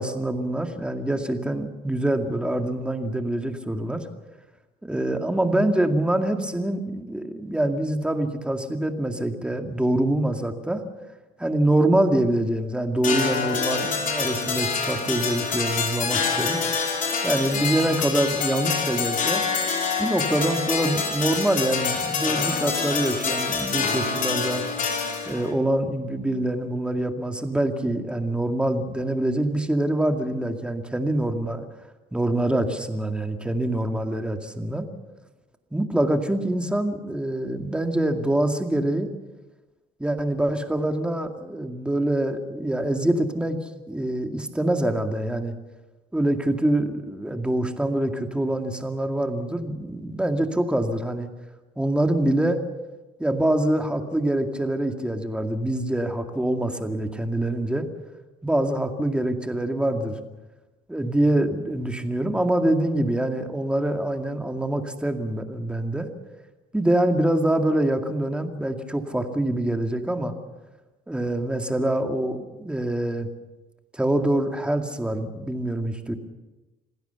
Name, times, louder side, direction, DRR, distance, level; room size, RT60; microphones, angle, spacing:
voice 1, 0.0-4.1 4.8-10.8 11.4-16.6 17.2-19.4 20.0-24.6 25.3-31.7 32.1-34.9 35.7-39.1 40.0-45.5 46.1-51.3 51.8-52.6 53.2-57.9 58.4-60.2 60.9-66.1 66.7-70.3 71.1-73.3 73.9-76.2, right 1 dB, 5° right, 5 dB, 2.2 m, -25 dB
sound 1, 13.0-25.5, left 5 dB, 50° left, 5.3 m, -26 dB
26.5 x 16.5 x 6.9 m, 1.2 s
cardioid pair, 110°, 17 cm